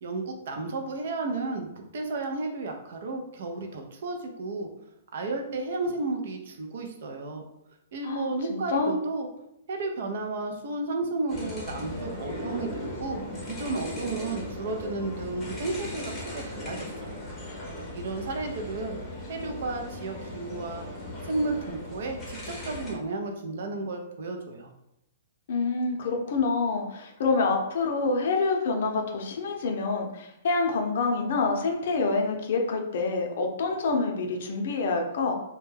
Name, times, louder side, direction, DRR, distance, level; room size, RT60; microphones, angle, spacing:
voice 1, 0.0-4.7 5.1-7.4 7.9-9.3 9.7-17.2 17.9-19.0 19.3-20.9 21.2-24.7, right 3 dB, 65° right, 3 dB, 0.5 m, -33 dB
voice 2, 8.0-8.9 25.5-35.3, left 3 dB, 60° left, 2 dB, 0.5 m, -27 dB
sound 1, 11.3-23.0, left 1 dB, 15° left, 0.7 m, -38 dB
2.2 x 2.2 x 3.3 m, 0.82 s
hypercardioid pair, 155°, 0 cm